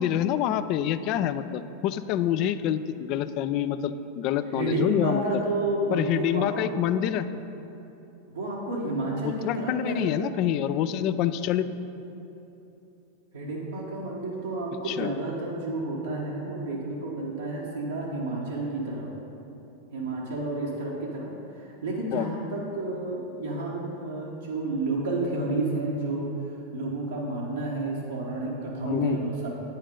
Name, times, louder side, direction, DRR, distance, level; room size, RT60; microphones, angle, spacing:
voice 1, 0.0-5.2 5.9-7.3 9.2-11.7 14.9-15.1 22.1-22.3 28.8-29.2, left 10 dB, 50° left, 13 dB, 0.3 m, -27 dB
voice 2, 4.5-6.6 8.3-10.2 13.3-19.1 19.9-29.5, right 2 dB, 85° right, -6 dB, 1.1 m, -30 dB
9.0 x 5.6 x 5.2 m, 3.0 s
hypercardioid pair, 95°, 0 cm